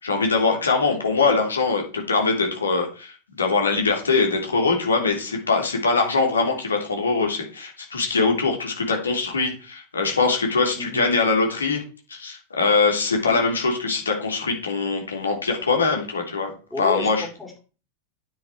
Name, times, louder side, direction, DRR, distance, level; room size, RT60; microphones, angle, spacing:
voice 1, 0.0-11.8 12.1-16.5 16.8-17.2, left 4 dB, 75° left, 2 dB, 3.3 m, -22 dB
voice 2, 10.7-11.1 16.7-17.6, left 2 dB, 5° left, -1 dB, 4.2 m, -31 dB
9.5 x 9.0 x 4.6 m, 0.35 s
figure-of-eight pair, 90°, 0 cm